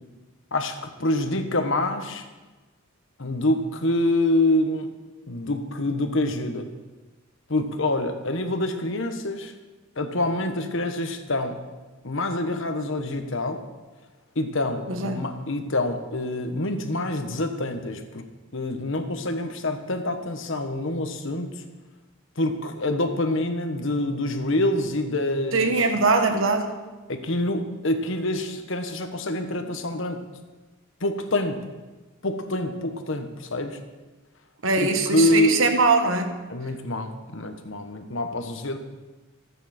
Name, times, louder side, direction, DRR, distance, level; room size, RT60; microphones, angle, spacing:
voice 1, 0.5-2.2 3.2-4.9 5.3-6.7 7.5-9.5 9.9-11.6 12.0-13.6 14.3-18.2 18.5-21.5 22.4-25.7 27.1-30.2 31.0-31.6 32.2-33.8 34.8-35.6 36.5-38.8, left 1 dB, 65° left, 7 dB, 1.4 m, -26 dB
voice 2, 14.9-15.3 25.5-26.7 34.6-36.4, right 3 dB, 65° right, 5 dB, 1.4 m, -22 dB
26.0 x 9.0 x 4.4 m, 1.2 s
head